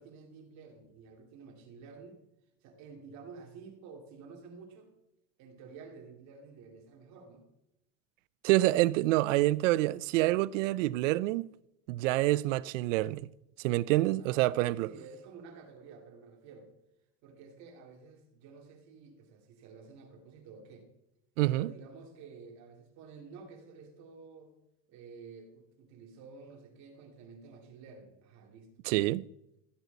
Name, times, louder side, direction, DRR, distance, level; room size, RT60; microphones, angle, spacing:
voice 1, 0.0-2.2 2.6-4.9 5.4-7.5 14.2-16.7 17.2-20.9 21.5-24.5 24.9-28.7, right 5 dB, 50° right, 2.5 m, -51 dB
voice 2, 8.4-11.5 11.9-13.3 13.6-14.9 21.4-21.7 28.8-29.3, right 17 dB, 80° right, 0.5 m, -27 dB
15.5 x 8.1 x 4.0 m
supercardioid pair, 140°, 37 cm